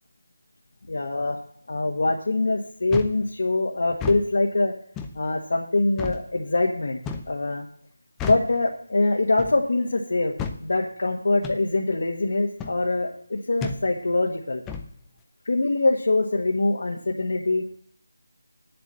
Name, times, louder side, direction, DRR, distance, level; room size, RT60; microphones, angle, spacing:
voice 1, 0.9-1.4 1.7-4.7 5.1-7.0 7.3-7.7 8.2-10.3 10.6-14.6 15.4-17.6, left 2 dB, 45° left, -1 dB, 1.4 m, -24 dB
sound 1, 2.9-3.2 3.9-4.2 5.0-5.2 6.0-6.2 7.0-7.3 8.2-8.5 9.4-9.6 10.4-10.6 11.4-11.6 12.6-12.8 13.6-13.8 14.7-14.9, left 5 dB, 5° left, 0.4 m, -32 dB
9.3 x 7.1 x 7.5 m, 0.62 s
figure-of-eight pair, 180°, 0 cm